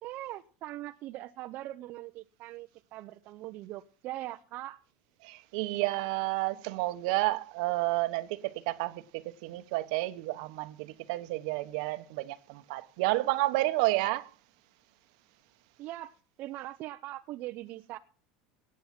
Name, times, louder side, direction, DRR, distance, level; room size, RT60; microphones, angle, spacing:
voice 1, 0.0-4.8 15.8-18.0, right 15 dB, 55° right, 0.7 m, -41 dB
voice 2, 5.2-14.3, right 19 dB, 70° right, 1.1 m, -31 dB
18.0 x 8.4 x 5.9 m
supercardioid pair, 110°, 4 cm